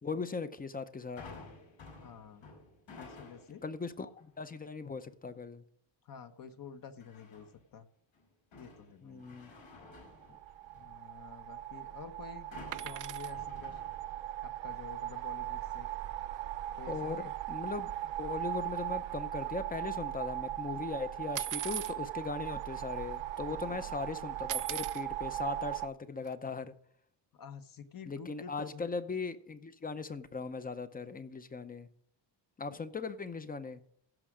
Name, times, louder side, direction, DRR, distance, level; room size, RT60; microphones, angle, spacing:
voice 1, 0.0-1.2 3.6-5.6 9.0-9.5 16.9-17.9 18.2-26.7 28.0-31.9 32.6-33.8, left 4 dB, 20° left, 0.6 m, -39 dB
sound 1, 1.2-3.7 4.2-4.6 7.0-7.7 8.1-11.0 12.5-14.5 14.8-14.9, left 3 dB, 90° left, 4.9 m, -52 dB
voice 2, 1.9-2.4 3.0-3.6 6.0-7.9 8.6-9.3 10.7-13.8 14.4-15.9 16.8-17.3 23.5-23.9 27.3-29.0, left 7 dB, 50° left, 1.0 m, -49 dB
sound 2, 10.0-25.9, right 14 dB, 85° right, 0.6 m, -39 dB
sound 3, 12.7-13.3 15.5-15.6 15.9-16.1 16.3-16.4 17.2-17.3 17.8-20.0 21.4-22.0 22.7-22.8 23.1-23.5 24.5-25.0 26.2-26.3, right 12 dB, 45° right, 0.4 m, -40 dB
16.0 x 6.3 x 4.9 m
wide cardioid pair, 170°, 44 cm